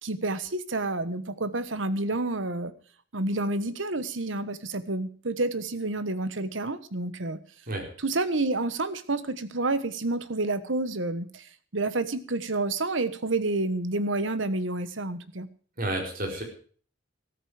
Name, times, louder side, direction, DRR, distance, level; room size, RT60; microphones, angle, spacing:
voice 1, 0.0-2.7 3.1-7.4 8.0-11.4 11.7-15.5, right 2 dB, 70° right, 13 dB, 1.3 m, -29 dB
voice 2, 15.8-16.4, right 1 dB, 45° right, 2 dB, 4.6 m, -30 dB
14.0 x 13.5 x 4.9 m, 0.44 s
head